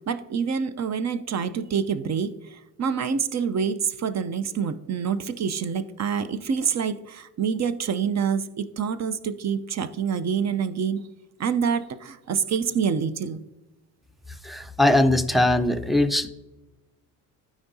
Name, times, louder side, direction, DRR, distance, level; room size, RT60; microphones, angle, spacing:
voice 1, 0.1-2.3 2.8-11.0 11.4-13.4, right 6 dB, 40° right, 12 dB, 0.7 m, -26 dB
voice 2, 14.4-16.3, left 1 dB, ahead, 7 dB, 0.6 m, -21 dB
13.0 x 4.9 x 2.7 m, 1.0 s
hypercardioid pair, 60°, 44 cm